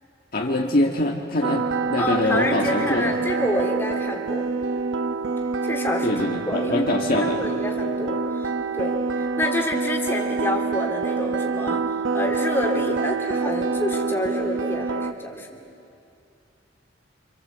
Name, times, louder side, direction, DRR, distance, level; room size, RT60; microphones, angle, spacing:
voice 1, 0.3-3.1 6.0-7.4, left 1 dB, 50° left, 0 dB, 1.6 m, -24 dB
sound 1, 1.4-15.1, right 4 dB, 80° right, 0.9 m, -26 dB
voice 2, 2.0-4.4 5.6-6.1 6.5-6.9 7.2-15.5, left 1 dB, 10° left, 0 dB, 2.9 m, -28 dB
27.5 x 27.0 x 8.1 m, 2.6 s
head